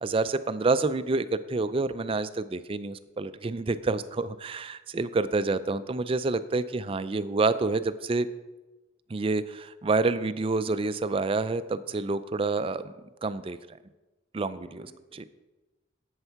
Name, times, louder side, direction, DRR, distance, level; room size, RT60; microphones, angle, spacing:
voice 1, 0.0-8.3 9.1-12.9 13.2-13.8 14.3-14.9 15.1-15.2, right 3 dB, 30° right, 13 dB, 0.4 m, -28 dB
voice 2, 14.5-15.3, right 1 dB, 10° left, -5 dB, 1.3 m, -56 dB
8.1 x 7.9 x 5.7 m, 1.1 s
head